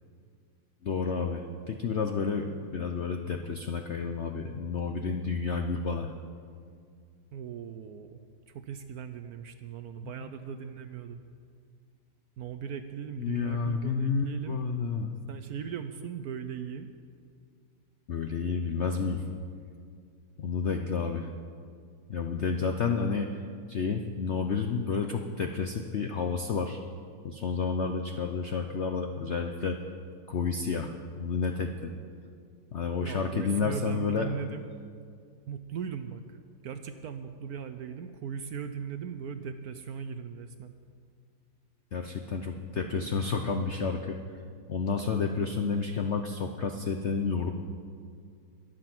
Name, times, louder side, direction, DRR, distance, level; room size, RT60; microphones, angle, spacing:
voice 1, 0.8-6.1 10.0-10.1 13.2-15.2 18.1-19.2 20.4-21.3 22.1-23.4 23.7-26.8 27.2-29.8 30.3-31.9 32.7-34.3 41.9-44.2 44.7-47.5, left 5 dB, 65° left, 5 dB, 0.6 m, -30 dB
voice 2, 7.3-8.2 8.5-11.2 12.4-14.6 15.3-16.9 33.0-34.7 35.5-40.7, right 7 dB, 65° right, 9 dB, 1.0 m, -38 dB
22.5 x 7.7 x 6.0 m, 2.2 s
omnidirectional pair, 2.0 m